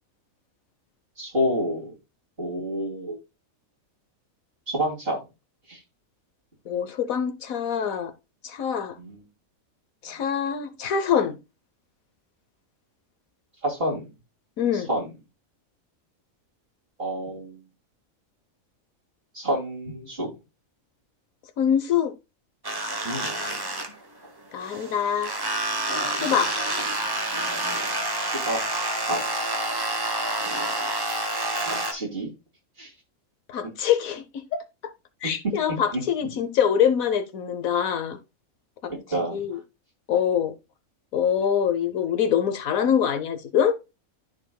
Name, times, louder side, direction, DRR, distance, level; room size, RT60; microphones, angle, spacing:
voice 1, 1.2-1.9 2.4-3.2 4.7-5.2 5.7-5.8 9.0-9.2 13.6-14.1 14.9-15.1 17.0-17.6 19.3-20.3 23.0-23.3 26.2-26.4 28.2-28.6 29.0-29.2 31.7-32.3 32.8-32.9 35.9-36.0 38.9-39.4, equal, 45° right, 2.8 m, -28 dB
voice 2, 6.7-8.1 8.4-9.0 10.0-11.4 14.6-14.9 21.6-22.1 23.2-23.4 24.5-25.3 26.1-26.5 33.5-34.6 35.2-38.2 38.8-38.9 39.3-39.6 40.1-40.5 41.1-43.7, left 8 dB, 80° left, 1.3 m, -24 dB
sound 1, 22.6-24.3 24.6-31.9, right 2 dB, 20° right, 1.0 m, -28 dB
13.0 x 4.6 x 2.2 m
omnidirectional pair, 1.4 m